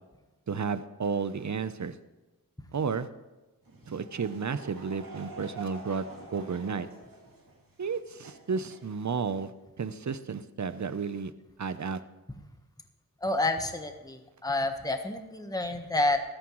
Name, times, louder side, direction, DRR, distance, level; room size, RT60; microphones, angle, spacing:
voice 1, 0.5-1.9 2.7-3.1 3.9-6.0 6.3-6.9 7.8-9.5 9.8-11.3 11.6-12.0, right 5 dB, 55° right, 13 dB, 0.7 m, -32 dB
Laughter / Crowd, 3.6-9.4, right 3 dB, 70° right, 2.5 m, -47 dB
voice 2, 13.2-16.2, left 2 dB, 10° left, 6 dB, 1.2 m, -29 dB
14.5 x 13.5 x 3.1 m, 1.1 s
wide cardioid pair, 55°, 35 cm